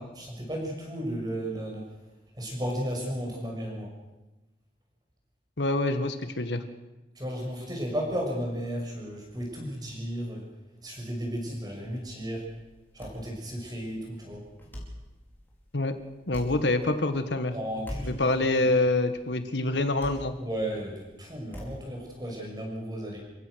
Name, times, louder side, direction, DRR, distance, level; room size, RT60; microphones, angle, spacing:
voice 1, 0.0-1.9 2.3-4.0 7.1-10.5 10.8-12.4 12.9-14.5 17.5-18.2 18.6-18.7 20.4-23.2, equal, 20° right, 0 dB, 6.1 m, -34 dB
voice 2, 5.6-6.6 15.7-15.9 16.3-17.5 18.0-20.3, left 2 dB, 80° left, 9 dB, 1.6 m, -26 dB
sound 1, 11.8-22.3, equal, 10° left, 4.6 m, -46 dB
28.5 x 16.0 x 6.4 m, 1.1 s
head